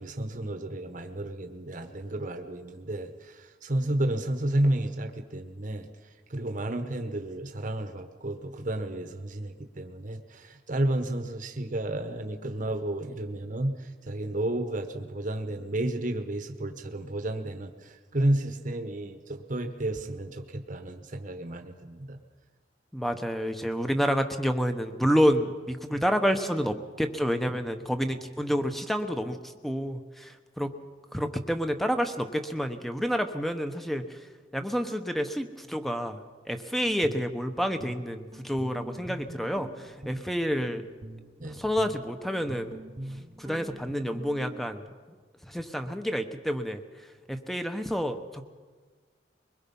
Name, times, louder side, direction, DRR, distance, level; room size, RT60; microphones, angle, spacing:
voice 1, 0.0-5.9 6.3-22.2 41.4-41.6, right 1 dB, 45° right, 6 dB, 1.2 m, -31 dB
voice 2, 22.9-29.4 29.6-30.7 31.1-34.2 34.5-40.8 41.4-42.8 43.4-44.9 45.4-46.8 47.3-48.4, equal, ahead, 8 dB, 1.0 m, -29 dB
Guitar, 36.8-44.8, right 1 dB, 30° right, 0.9 m, -44 dB
23.0 x 21.0 x 5.5 m, 1.5 s
head